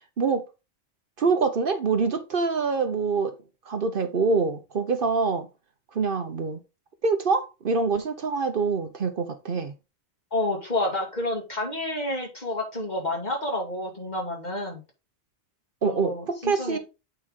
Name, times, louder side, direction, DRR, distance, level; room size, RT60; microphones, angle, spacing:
voice 1, 1.2-3.3 3.6-5.5 5.9-6.6 7.0-9.8 15.8-16.8, right 4 dB, 55° right, 1.0 m, -25 dB
voice 2, 10.3-14.8 15.8-16.8, left 1 dB, 40° left, 2.5 m, -29 dB
8.6 x 4.5 x 3.6 m
omnidirectional pair, 1.1 m